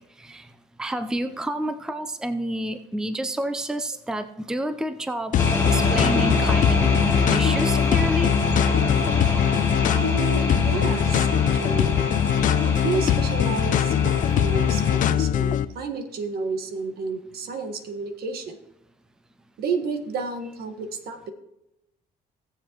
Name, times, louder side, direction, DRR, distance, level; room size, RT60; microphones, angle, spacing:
voice 1, 0.2-0.5 0.8-6.8 7.3-8.3, right 1 dB, 5° right, 10 dB, 0.5 m, -29 dB
sound 1, 5.3-15.6, left 10 dB, 50° left, 0.5 m, -22 dB
sound 2, 5.4-15.1, left 2 dB, 15° left, 2.1 m, -26 dB
voice 2, 9.9-12.0 12.6-18.6 19.6-21.3, right 4 dB, 65° right, 7 dB, 1.5 m, -31 dB
18.0 x 7.2 x 3.0 m, 0.87 s
cardioid pair, 110°, 17 cm